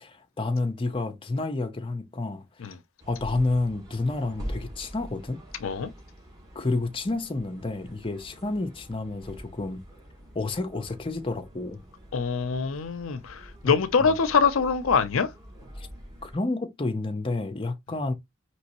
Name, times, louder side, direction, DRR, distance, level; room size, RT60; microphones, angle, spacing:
voice 1, 0.0-2.8 3.1-5.4 6.5-9.8 10.3-11.8 13.6-13.7 14.0-14.2 15.8-15.9 16.2-18.1, left 2 dB, 25° left, 0.6 m, -30 dB
sound 1, 3.0-16.4, equal, 20° right, 2.8 m, -44 dB
voice 2, 12.1-15.3, left 5 dB, 75° left, 0.6 m, -24 dB
5.2 x 3.0 x 2.9 m
head